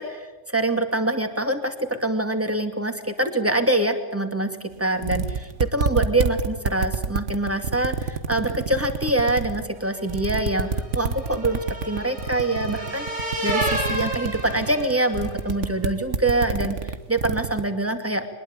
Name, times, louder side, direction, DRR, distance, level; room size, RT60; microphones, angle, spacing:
voice 1, 0.0-10.7 10.9-18.2, right 2 dB, 10° right, 6 dB, 2.4 m, -25 dB
sound 1, 4.7-4.8 5.0-9.6 10.0-17.6, right 5 dB, 85° right, 1.6 m, -27 dB
sound 2, 10.0-15.5, right 1 dB, 65° right, 6.2 m, -31 dB
23.0 x 21.0 x 8.8 m, 1.1 s
omnidirectional pair, 1.2 m